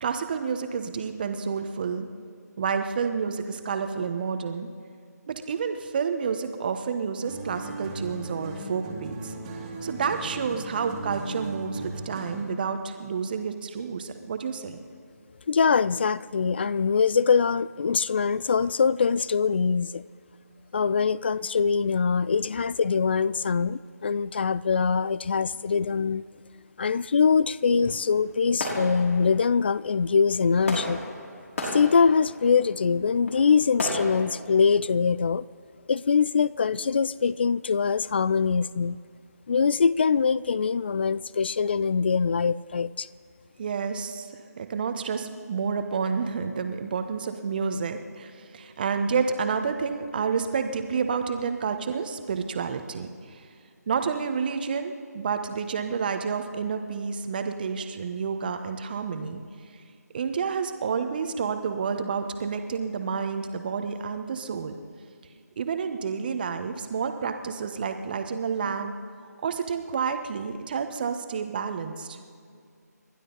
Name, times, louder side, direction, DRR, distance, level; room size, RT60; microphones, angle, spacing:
voice 1, 0.0-2.1 2.6-4.7 5.3-9.3 9.8-14.8 43.6-44.3 44.6-53.5 53.9-59.4 59.7-59.8 60.1-64.7 65.6-68.9 69.4-72.2, right 6 dB, 30° right, 7 dB, 1.2 m, -29 dB
sound 1, 7.2-12.6, right 2 dB, 15° right, 2.2 m, -37 dB
voice 2, 15.5-20.0 20.7-26.2 26.8-31.0 31.7-35.4 35.9-39.0 39.5-43.1, left 5 dB, 35° left, 20 dB, 0.4 m, -23 dB
sound 2, 27.8-34.2, left 1 dB, 55° left, 5.6 m, -36 dB
30.0 x 12.0 x 4.0 m, 2.3 s
figure-of-eight pair, 155°, 9 cm